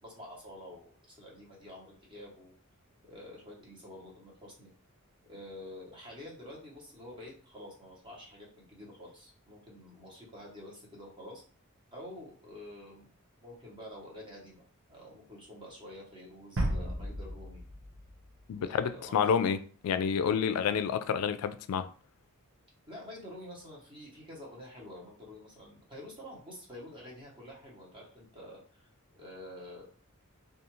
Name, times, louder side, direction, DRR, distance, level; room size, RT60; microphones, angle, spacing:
voice 1, 0.0-2.5 3.1-4.7 5.3-11.4 11.9-13.1 13.4-14.6 14.9-17.6 18.5-19.1 22.9-29.8, left 1 dB, 25° right, 1.0 m, -48 dB
sound 1, 16.6-19.1, right 1 dB, 60° right, 0.6 m, -35 dB
voice 2, 18.5-21.9, left 7 dB, 85° left, 0.3 m, -29 dB
2.4 x 2.4 x 3.0 m
head